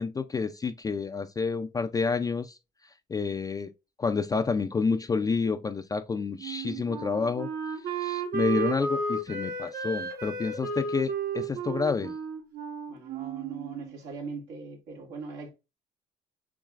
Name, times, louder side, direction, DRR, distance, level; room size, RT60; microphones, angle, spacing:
voice 1, 0.0-2.6 3.1-3.7 4.0-7.5 8.0-12.1, left 4 dB, 20° left, 0.4 m, -29 dB
Wind instrument woodwind instrument, 6.4-13.9, right 4 dB, 70° right, 1.6 m, -33 dB
voice 2, 12.9-15.5, right 4 dB, 85° right, 2.3 m, -40 dB
7.1 x 3.0 x 2.4 m
cardioid pair, 110°, 17 cm